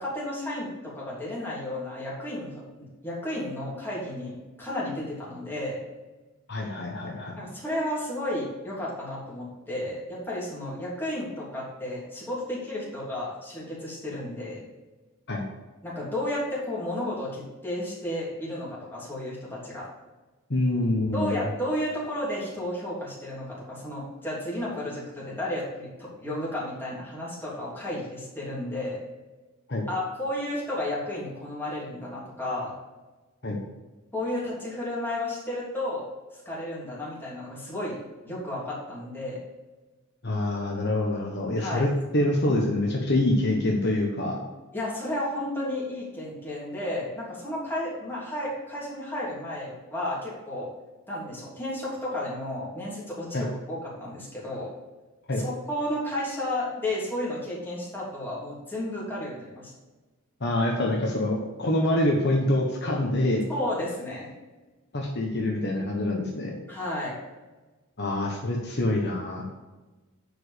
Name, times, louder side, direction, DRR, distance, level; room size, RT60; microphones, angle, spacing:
voice 1, 0.0-2.6 3.0-5.8 7.4-14.6 15.8-19.9 21.1-29.0 29.9-32.7 34.1-36.0 36.4-39.4 41.6-41.8 44.7-50.7 51.1-54.7 55.4-59.7 63.5-64.3 66.7-67.1, left 1 dB, 10° left, -6 dB, 3.2 m, -32 dB
voice 2, 6.5-7.3 15.3-15.4 20.5-21.3 29.7-29.8 33.4-33.6 40.2-44.4 53.3-53.5 55.3-55.4 60.4-63.5 64.9-66.6 68.0-69.5, left 1 dB, 50° left, -1 dB, 1.2 m, -26 dB
10.5 x 5.1 x 5.1 m, 1.2 s
head